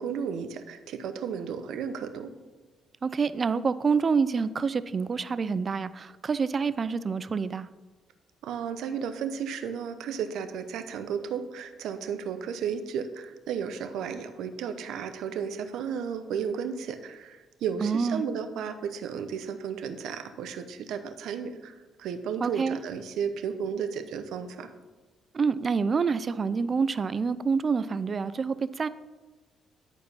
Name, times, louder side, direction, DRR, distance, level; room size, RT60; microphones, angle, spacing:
voice 1, 0.0-2.3 8.4-24.7, right 7 dB, 80° right, 9 dB, 0.8 m, -33 dB
voice 2, 3.0-7.7 17.8-18.2 22.4-22.8 25.3-28.9, right 5 dB, 40° right, 15 dB, 0.4 m, -27 dB
11.0 x 4.6 x 5.5 m, 1.3 s
cardioid pair, 90°, 0 cm